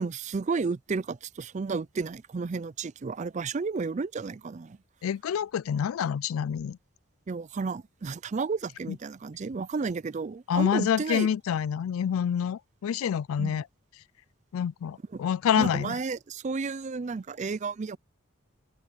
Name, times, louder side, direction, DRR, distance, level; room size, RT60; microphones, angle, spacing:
voice 1, 0.0-4.8 7.3-11.3 13.4-13.5 15.1-15.2 15.6-18.0, right 4 dB, 35° right, 0.4 m, -32 dB
voice 2, 5.0-6.8 8.9-9.0 10.5-13.7 14.5-16.0, left 8 dB, 90° left, 0.3 m, -27 dB
open air
head